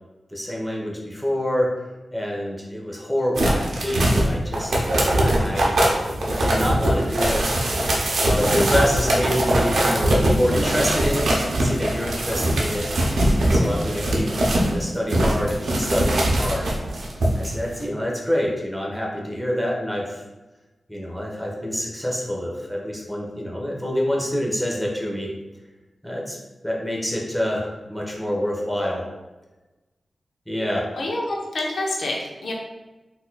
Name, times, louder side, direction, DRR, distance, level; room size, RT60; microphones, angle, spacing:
voice 1, 0.3-1.7 2.1-5.7 6.4-7.4 8.2-12.9 13.4-14.3 14.5-16.7 17.3-20.2 20.9-25.3 26.0-26.4 26.6-29.1 30.5-30.9, equal, ahead, -3 dB, 0.9 m, -26 dB
sound 1, 3.4-14.8 15.1-17.5 17.8-17.9, right 1 dB, 80° right, 0.5 m, -21 dB
voice 2, 30.9-32.5, left 1 dB, 75° left, -1 dB, 0.7 m, -27 dB
4.0 x 2.7 x 2.2 m, 1.1 s
cardioid pair, 45°, 0 cm